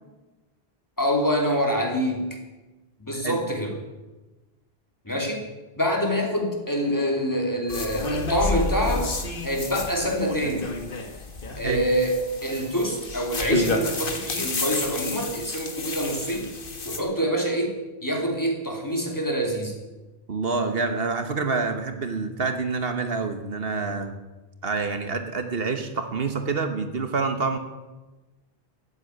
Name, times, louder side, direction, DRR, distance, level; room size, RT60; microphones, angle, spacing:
voice 1, 1.0-2.2 3.0-3.8 5.0-5.4 5.8-9.1 9.4-10.7 11.6-12.1 12.4-16.5 16.8-17.7 18.0-19.7, equal, 20° left, 0 dB, 2.9 m, -25 dB
sound 1, 7.7-17.0, left 2 dB, 60° left, 1.7 m, -30 dB
voice 2, 20.3-24.1 24.6-27.6, right 4 dB, 70° right, 7 dB, 1.5 m, -27 dB
14.5 x 8.2 x 9.2 m, 1.1 s
omnidirectional pair, 1.0 m